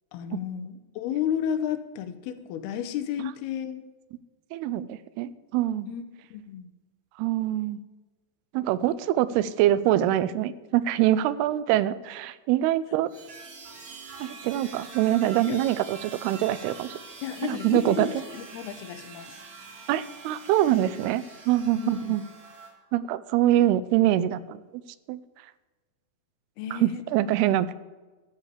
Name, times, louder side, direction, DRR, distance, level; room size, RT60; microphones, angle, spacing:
voice 1, 0.1-3.8 5.9-6.0 6.3-6.7 15.5-15.6 17.2-19.4 21.8-22.2 26.6-27.6, left 9 dB, 85° left, 9 dB, 2.8 m, -32 dB
voice 2, 4.5-5.9 7.2-7.8 8.5-13.1 14.2-16.9 17.4-18.1 19.9-22.2 22.9-24.6 25.1-25.2 26.8-27.8, right 13 dB, 90° right, 16 dB, 2.6 m, -24 dB
sound 1, 13.1-22.7, right 4 dB, 50° right, 2.8 m, -45 dB
12.5 x 5.3 x 8.1 m, 1.2 s
omnidirectional pair, 4.5 m